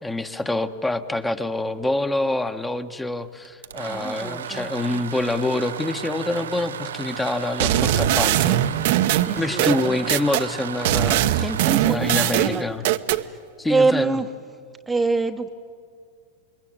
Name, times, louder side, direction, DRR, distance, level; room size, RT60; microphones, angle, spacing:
voice 1, 0.0-8.7 9.4-11.5 11.8-12.8 13.6-14.2, left 2 dB, 10° left, 8 dB, 1.3 m, -26 dB
sound 1, 3.4-13.3, right 9 dB, 85° right, 0.7 m, -35 dB
voice 2, 3.9-5.0 9.2-10.1 11.4-12.7 13.2-13.4 13.7-14.3 14.9-15.5, right 3 dB, 10° right, 5 dB, 1.1 m, -26 dB
sound 2, 7.6-10.5 10.9-13.2, right 12 dB, 65° right, 1.0 m, -21 dB
28.0 x 22.0 x 8.9 m, 2.2 s
hypercardioid pair, 105°, 0 cm